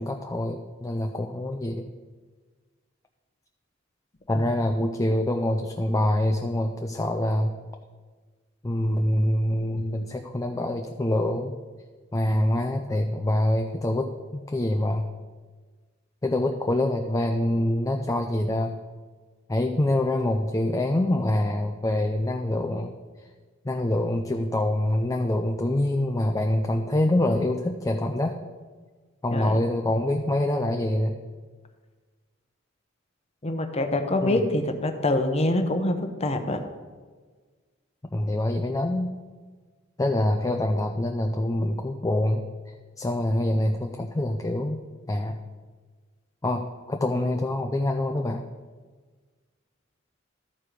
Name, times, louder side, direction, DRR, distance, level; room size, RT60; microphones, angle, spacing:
voice 1, 0.0-1.9 4.3-7.5 8.6-11.6 12.1-15.1 16.2-18.8 19.5-22.9 23.2-23.3 23.6-28.4 29.2-31.2 34.2-34.4 38.0-39.1 40.0-42.4 43.0-44.8 45.1-45.4 46.4-48.4, left 1 dB, 15° left, 4 dB, 0.4 m, -25 dB
voice 2, 33.4-36.6, left 1 dB, 35° left, 6 dB, 0.8 m, -25 dB
13.5 x 4.7 x 5.0 m, 1.4 s
head